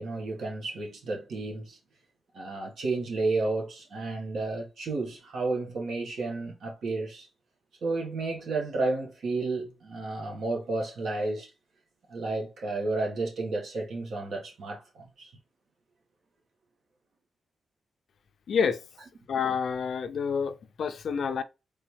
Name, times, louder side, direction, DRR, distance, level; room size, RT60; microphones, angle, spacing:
voice 1, 0.0-1.8 2.3-7.3 7.8-11.5 12.1-15.3, right 3 dB, 65° right, 1.6 m, -32 dB
voice 2, 18.5-18.8 19.3-21.4, left 6 dB, 60° left, 0.5 m, -28 dB
4.0 x 3.4 x 3.3 m
wide cardioid pair, 145°, 0 cm